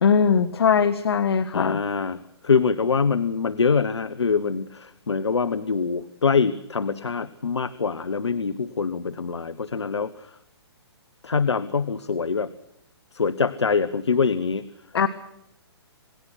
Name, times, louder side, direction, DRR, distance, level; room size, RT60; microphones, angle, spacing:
voice 1, 0.0-1.8 14.9-15.1, left 6 dB, 65° left, 12 dB, 1.5 m, -20 dB
voice 2, 1.5-10.3 11.2-12.5 13.1-14.6, left 5 dB, 80° left, 13 dB, 1.2 m, -24 dB
28.0 x 18.5 x 6.1 m, 0.81 s
figure-of-eight pair, 130°, 14 cm